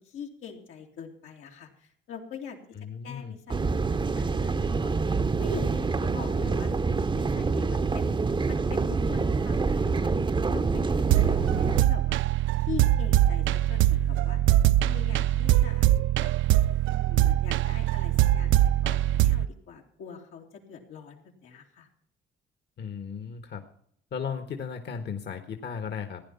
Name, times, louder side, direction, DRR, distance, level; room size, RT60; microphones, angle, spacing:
voice 1, 0.0-2.6 3.0-5.0 5.4-6.7 7.1-10.1 10.5-12.2 12.6-14.4 14.8-15.9 16.2-16.3 16.9-18.6 18.8-21.9, left 6 dB, 90° left, 1 dB, 2.8 m, -43 dB
voice 2, 2.7-3.3 22.8-23.6 24.1-26.2, left 6 dB, 60° left, 7 dB, 1.5 m, -35 dB
sound 1, 3.5-11.8, right 4 dB, 25° right, 0.7 m, -26 dB
sound 2, 11.1-19.5, right 13 dB, 75° right, 0.4 m, -23 dB
15.5 x 10.0 x 5.6 m, 0.65 s
cardioid pair, 90°, 20 cm